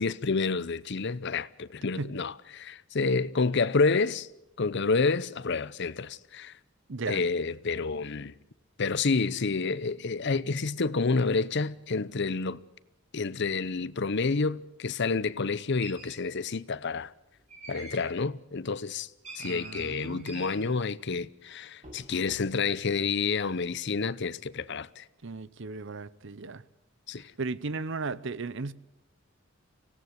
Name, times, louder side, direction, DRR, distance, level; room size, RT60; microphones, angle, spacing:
voice 1, 0.0-4.3 4.6-6.5 7.1-8.3 8.8-12.6 13.1-17.1 17.7-19.1 19.3-25.0 27.1-27.3, left 4 dB, 60° left, 0.7 m, -29 dB
voice 2, 6.9-7.2 19.4-20.7 25.2-26.6 27.4-28.7, right 3 dB, 60° right, 0.8 m, -36 dB
sound 1, 15.8-16.2 17.5-18.1 19.2-20.6 21.8-22.0 22.3-22.7, right 3 dB, 35° right, 6.8 m, -45 dB
25.0 x 17.0 x 8.0 m
head